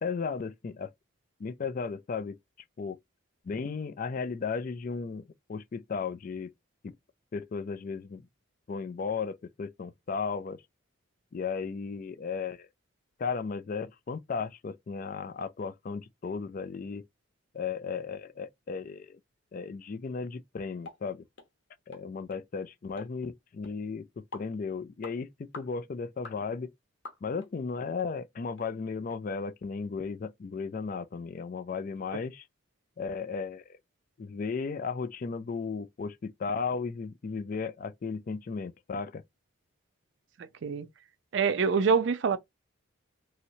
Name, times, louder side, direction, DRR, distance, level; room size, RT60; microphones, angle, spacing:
voice 1, 0.0-0.9 1.4-2.4 2.8-3.0 3.4-6.5 6.8-6.9 7.3-8.2 8.7-10.6 11.3-12.7 13.2-17.0 17.5-19.2 19.5-21.2 21.9-26.7 27.2-32.5 33.0-33.8 34.2-39.2, left 5 dB, 40° left, 0.3 m, -35 dB
sound 1, 20.8-21.0 21.4-21.5 21.9-22.0 22.3-22.4 23.0-23.1 23.6-23.7 24.3-24.5 25.0-25.2 25.5-25.7 26.2-26.4 27.0-27.5 28.0-28.1 28.6-28.7 29.1-29.2, left 3 dB, 60° left, 0.9 m, -45 dB
voice 2, 40.4-40.9 41.3-42.4, right 5 dB, 55° right, 0.4 m, -26 dB
3.1 x 2.8 x 2.7 m
head